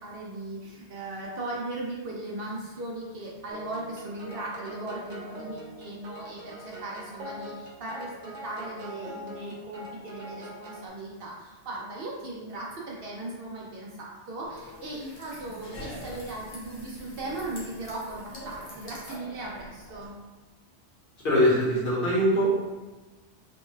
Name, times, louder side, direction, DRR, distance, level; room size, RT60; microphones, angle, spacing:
voice 1, 0.0-20.1, right 2 dB, 65° right, -3 dB, 0.7 m, -38 dB
sound 1, 3.5-10.9, equal, 85° right, 1.0 m, -43 dB
sound 2, 14.4-20.1, left 1 dB, 80° left, 1.2 m, -44 dB
voice 2, 21.2-22.5, equal, 50° left, -8 dB, 1.3 m, -22 dB
3.1 x 2.2 x 3.1 m, 1.2 s
omnidirectional pair, 1.2 m